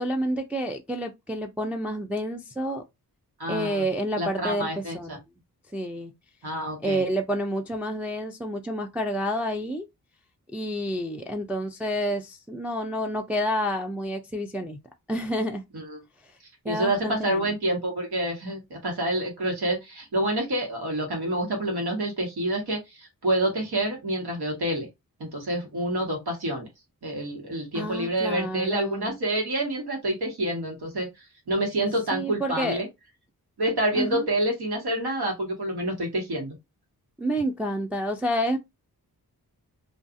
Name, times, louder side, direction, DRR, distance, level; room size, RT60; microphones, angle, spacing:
voice 1, 0.0-2.8 3.5-5.2 5.7-6.1 6.8-9.9 10.5-14.8 15.1-15.6 16.6-17.5 27.7-29.2 32.1-32.8 33.9-34.3 37.2-38.6, equal, 5° right, 0.3 m, -29 dB
voice 2, 3.4-3.9 4.2-5.2 6.4-7.0 15.7-16.0 16.6-24.9 25.2-26.7 27.0-32.9 33.6-36.6, right 1 dB, 80° right, 1.4 m, -28 dB
2.5 x 2.3 x 2.5 m
cardioid pair, 75°, 38 cm